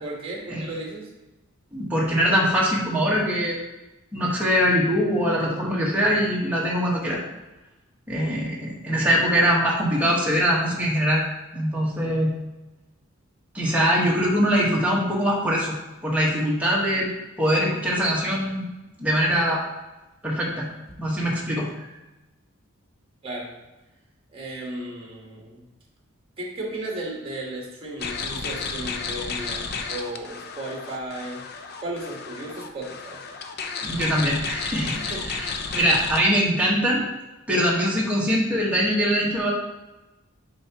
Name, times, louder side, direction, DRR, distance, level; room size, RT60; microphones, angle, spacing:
voice 1, 0.0-1.1 23.2-23.5 24.3-25.6 26.4-31.4 31.8-33.2 34.8-35.3, right 1 dB, 25° right, -2 dB, 1.4 m, -35 dB
voice 2, 1.7-3.6 4.1-7.2 8.1-11.2 11.5-12.3 13.5-15.8 16.0-17.1 17.4-18.7 19.0-19.6 20.2-20.7 21.0-21.7 33.8-35.0 35.2-35.5 35.7-37.0 37.5-39.5, equal, 5° right, -5 dB, 1.3 m, -22 dB
sound 1, 28.0-36.2, left 5 dB, 50° left, 0.5 m, -32 dB
7.5 x 4.7 x 2.9 m, 1.1 s
head